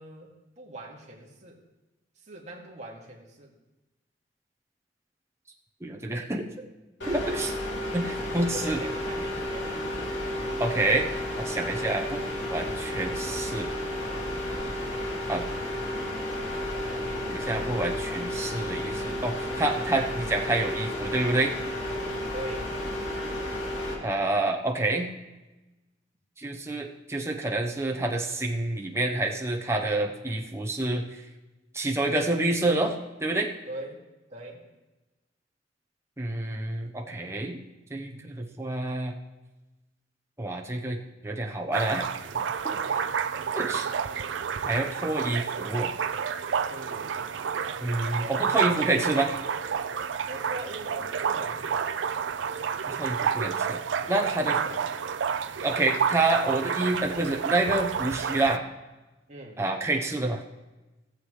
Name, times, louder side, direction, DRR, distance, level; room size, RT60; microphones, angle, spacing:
voice 1, 0.0-1.6 2.2-3.5 7.1-7.2 7.4-7.6 8.4-9.9 10.3-10.8 22.3-22.8 33.7-34.0 34.3-34.7 42.6-43.1 46.6-47.3 48.2-49.3 50.3-51.8 54.1-54.8 59.3-59.6, right 1 dB, 40° right, -2 dB, 2.2 m, -42 dB
voice 2, 5.8-6.5 7.1-7.5 7.9-8.8 10.6-11.1 11.4-12.2 12.5-13.7 15.3-15.5 17.3-21.5 24.0-25.1 26.4-31.1 31.7-33.5 36.2-37.6 37.9-39.1 40.4-42.4 43.6-43.9 44.6-45.9 47.8-49.3 52.9-53.8 54.1-54.6 55.6-58.6 59.6-60.4, right 2 dB, 15° right, 1 dB, 1.0 m, -28 dB
sound 1, 7.0-23.9, left 1 dB, 80° left, 2.8 m, -32 dB
sound 2, 41.7-58.6, right 7 dB, 80° right, 0.5 m, -30 dB
17.5 x 7.6 x 3.3 m, 1.1 s
head